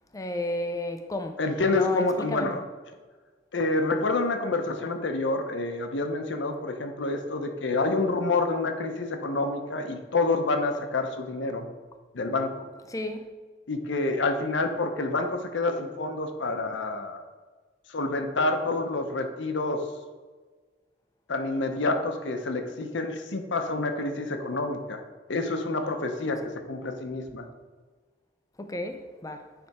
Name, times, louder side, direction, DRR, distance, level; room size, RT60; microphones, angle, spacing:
voice 1, 0.1-1.4 1.7-2.6 12.9-13.2 28.6-29.4, left 1 dB, 20° left, 0.5 m, -32 dB
voice 2, 1.4-2.6 3.5-11.7 12.1-12.5 13.7-17.2 17.9-19.8 21.3-25.0 25.3-27.5, left 2 dB, 75° left, 0.8 m, -28 dB
9.5 x 3.4 x 4.2 m
head